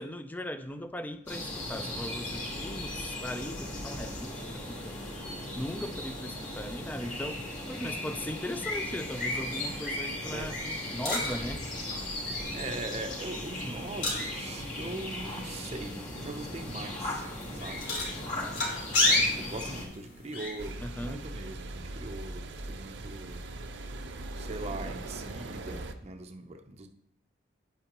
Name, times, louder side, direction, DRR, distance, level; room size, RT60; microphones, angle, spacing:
voice 1, 0.0-5.0 5.5-10.6 10.9-11.6 20.8-21.2, left 1 dB, 10° left, 10 dB, 0.4 m, -38 dB
sound 1, 1.3-19.8, left 1 dB, 45° left, 2.6 m, -37 dB
sound 2, 8.7-20.7, left 2 dB, 80° left, 2.9 m, -34 dB
voice 2, 10.2-10.9 12.5-17.3 17.5-17.9 19.0-23.4 24.4-26.9, right 2 dB, 35° right, 5 dB, 0.7 m, -41 dB
sound 3, 20.6-25.9, right 2 dB, 80° right, 0.7 m, -40 dB
9.9 x 8.8 x 3.0 m, 0.74 s
head